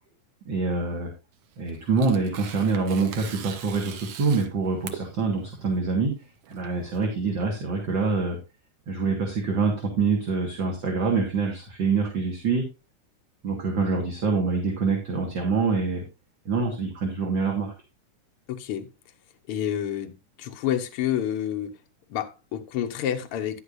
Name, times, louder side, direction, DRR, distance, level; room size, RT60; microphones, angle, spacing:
voice 1, 0.5-1.1 1.6-6.1 6.5-8.4 8.9-12.6 13.4-16.0 16.5-17.7, right 4 dB, 45° right, 2.0 m, -25 dB
Tearing, 1.3-8.1, right 9 dB, 70° right, 1.7 m, -43 dB
voice 2, 18.5-18.9 19.5-20.1 20.4-21.7 22.1-23.6, left 10 dB, 60° left, 1.5 m, -28 dB
10.5 x 9.9 x 2.6 m
omnidirectional pair, 3.7 m